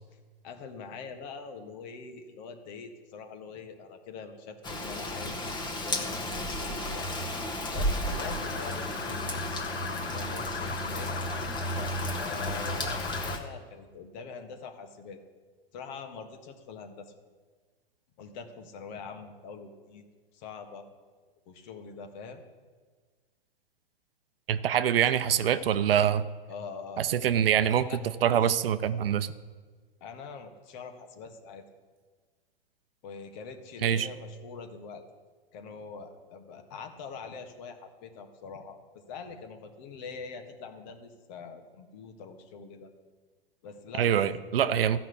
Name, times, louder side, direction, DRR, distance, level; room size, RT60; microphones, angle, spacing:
voice 1, 0.1-7.1 7.7-9.5 9.9-11.2 11.6-15.2 15.7-17.1 18.2-20.1 20.3-20.8 21.4-22.4 26.5-27.4 27.9-28.0 28.3-28.4 30.0-31.6 33.0-35.0 35.5-38.8 39.1-42.9 43.6-44.9, left 5 dB, 45° left, 6 dB, 1.6 m, -44 dB
Rain, 4.6-13.4, left 1 dB, 15° left, 1.4 m, -33 dB
sound 1, 8.0-13.4, left 5 dB, 85° left, 1.0 m, -38 dB
voice 2, 24.5-26.2 27.0-27.9 28.2-29.3 33.8-34.1 44.0-45.0, right 9 dB, 70° right, 13 dB, 0.7 m, -24 dB
13.5 x 6.0 x 8.3 m, 1.5 s
hypercardioid pair, 115°, 30 cm